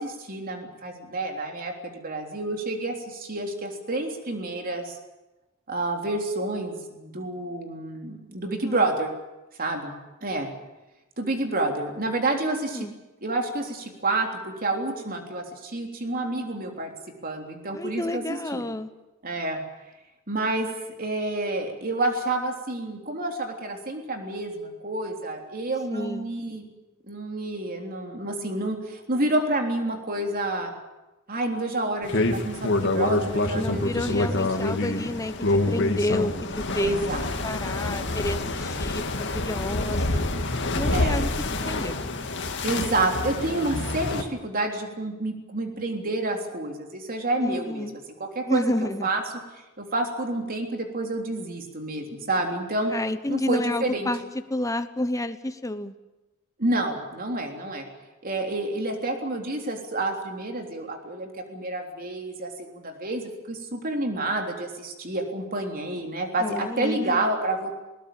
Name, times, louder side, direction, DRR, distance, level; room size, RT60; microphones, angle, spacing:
voice 1, 0.0-5.0 5.7-9.1 9.6-9.9 10.2-10.5 11.2-12.9 13.2-16.9 17.2-18.6 19.2-19.6 20.3-20.7 21.0-26.7 27.1-30.7 31.3-34.2 36.8-37.3 40.9-41.2 42.6-48.6 49.0-49.2 49.8-52.9 53.3-54.1 56.6-57.9 58.2-67.7, right 2 dB, 40° right, 3 dB, 3.5 m, -29 dB
voice 2, 12.4-12.9 17.7-18.9 25.9-26.3 33.5-37.1 37.4-39.0 39.3-40.3 40.7-41.3 41.6-42.0 47.4-47.9 48.5-49.1 52.8-54.2 54.5-55.9 66.4-67.4, left 1 dB, 15° left, 10 dB, 1.1 m, -30 dB
sound 1, 32.0-44.2, left 2 dB, 55° left, 2.1 m, -27 dB
20.5 x 19.0 x 9.0 m, 1.0 s
head